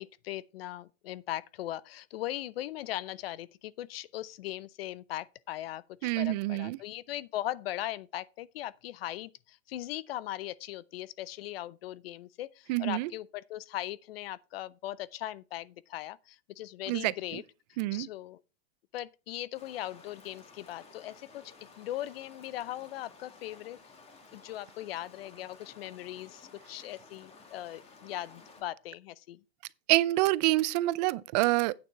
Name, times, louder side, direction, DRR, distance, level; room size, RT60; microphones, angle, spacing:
voice 1, 0.0-17.4 17.9-18.4 18.9-21.4 21.8-23.8 24.3-29.4, left 14 dB, 65° left, 0.6 m, -39 dB
voice 2, 6.0-6.8 12.7-13.1 16.9-17.4 17.8-18.1 29.9-31.7, right 19 dB, 40° right, 0.5 m, -27 dB
sound 1, 19.5-28.6, left 4 dB, 20° left, 2.1 m, -55 dB
8.9 x 7.0 x 4.5 m
supercardioid pair, 145°, 32 cm